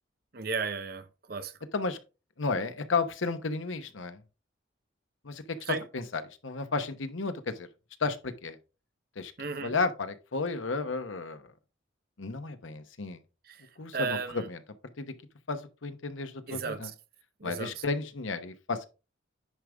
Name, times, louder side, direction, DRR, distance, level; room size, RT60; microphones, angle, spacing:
voice 1, 0.3-1.5 5.6-5.9 9.4-9.7 13.5-13.7 13.9-14.5 16.5-16.9 17.4-17.7, right 4 dB, 50° right, 0.8 m, -34 dB
voice 2, 2.4-4.2 5.2-7.7 8.0-8.6 9.2-9.3 9.6-11.4 12.2-13.2 13.8-14.6 15.0-15.1 15.5-16.9 17.4-18.9, left 4 dB, 90° left, 1.0 m, -33 dB
10.0 x 5.0 x 3.5 m
head